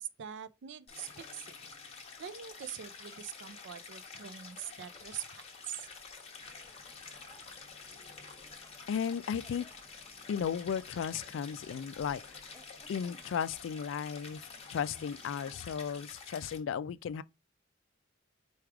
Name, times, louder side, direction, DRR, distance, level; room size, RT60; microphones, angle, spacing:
voice 1, 0.0-1.5 2.2-5.9, right 9 dB, 65° right, 0.4 m, -44 dB
Stream, 0.9-16.6, left 5 dB, 35° left, 1.0 m, -49 dB
sound 1, 6.3-16.2, equal, 10° left, 0.6 m, -61 dB
voice 2, 8.9-9.7 10.3-12.2 12.9-17.2, left 7 dB, 80° left, 0.3 m, -35 dB
4.7 x 2.3 x 4.7 m
head